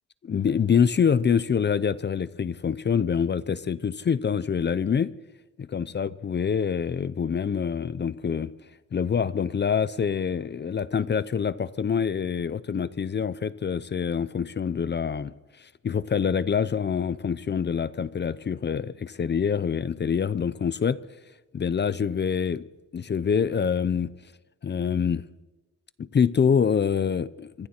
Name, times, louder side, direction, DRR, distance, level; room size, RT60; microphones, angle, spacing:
voice 1, 0.2-5.1 5.6-8.5 8.9-21.0 21.5-22.6 22.9-24.1 24.6-25.2 26.0-27.7, left 7 dB, 30° left, 0.6 m, -26 dB
26.0 x 24.5 x 4.4 m
wide cardioid pair, 145°, 33 cm